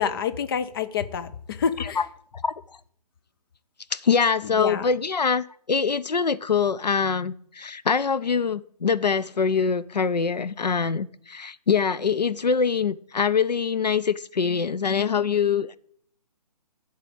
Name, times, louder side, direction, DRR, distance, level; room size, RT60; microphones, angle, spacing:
voice 1, 0.0-2.0 4.4-4.9, left 7 dB, 35° left, 10 dB, 0.6 m, -28 dB
voice 2, 3.9-15.8, left 6 dB, 80° left, 14 dB, 0.5 m, -24 dB
12.0 x 4.1 x 7.8 m, 0.63 s
figure-of-eight pair, 135°, 21 cm